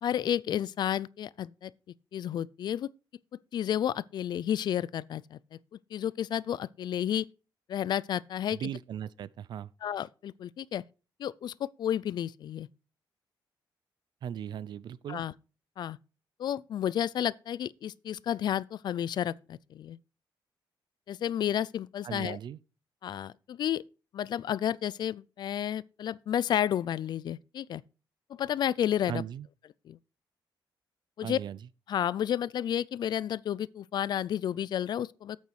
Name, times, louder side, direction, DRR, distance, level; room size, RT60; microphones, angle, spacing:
voice 1, 0.0-1.7 2.1-2.9 3.5-5.4 5.9-7.3 7.7-8.6 9.8-10.8 11.2-12.7 15.1-15.3 15.8-16.0 16.4-20.0 21.1-22.4 23.0-23.8 24.1-27.8 28.4-29.2 29.9-30.0 31.2-31.4 31.9-35.4, left 10 dB, 60° left, 0.4 m, -31 dB
voice 2, 8.5-9.7 14.2-15.2 22.0-22.6 29.1-29.5 31.2-31.6, right 9 dB, 60° right, 0.5 m, -37 dB
9.0 x 8.4 x 4.7 m
wide cardioid pair, 165°, 9 cm